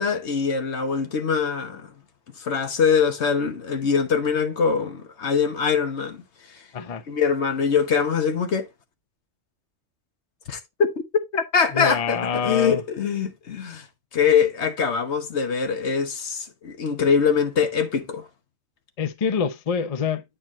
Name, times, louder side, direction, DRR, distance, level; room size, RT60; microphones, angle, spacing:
voice 1, 0.0-1.9 2.4-6.2 7.1-8.7 10.5-10.9 11.3-13.9 14.1-18.2, left 6 dB, 60° left, 1.3 m, -23 dB
voice 2, 11.7-12.8 19.0-20.2, left 6 dB, 40° left, 0.5 m, -26 dB
8.7 x 4.5 x 3.0 m
omnidirectional pair, 1.3 m